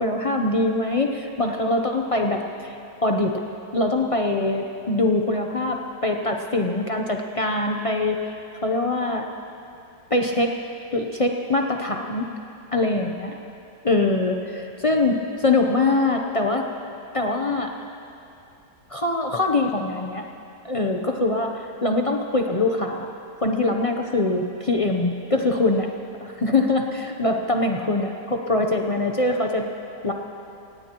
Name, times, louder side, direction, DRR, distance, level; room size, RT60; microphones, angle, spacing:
voice 1, 0.0-3.4 3.7-8.4 8.6-9.3 10.1-10.5 10.9-12.3 12.7-13.4 13.8-16.7 17.1-17.7 18.9-20.2 20.6-23.1 23.4-25.9 26.2-29.7 30.0-30.1, left 2 dB, 55° left, 2 dB, 0.3 m, -23 dB
26.5 x 18.0 x 3.0 m, 2.7 s
omnidirectional pair, 1.9 m